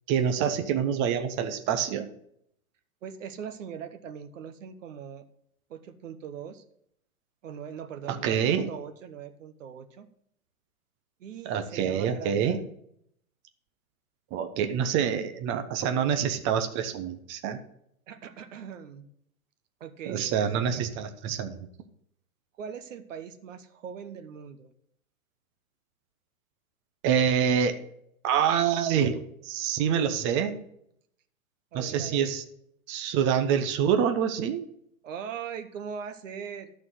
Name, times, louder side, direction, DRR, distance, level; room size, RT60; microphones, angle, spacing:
voice 1, 0.1-2.1 8.1-8.7 11.4-12.6 14.3-17.6 20.0-21.7 27.0-27.8 28.2-30.6 31.7-32.4 32.9-34.6, right 8 dB, 30° right, 8 dB, 1.0 m, -26 dB
voice 2, 3.0-5.2 5.7-6.6 7.4-10.1 11.2-12.6 18.1-19.1 19.8-20.9 22.6-24.7 31.7-32.3 35.0-36.7, right 7 dB, 60° right, 10 dB, 1.3 m, -40 dB
12.0 x 4.5 x 7.9 m, 0.71 s
hypercardioid pair, 120°, 42 cm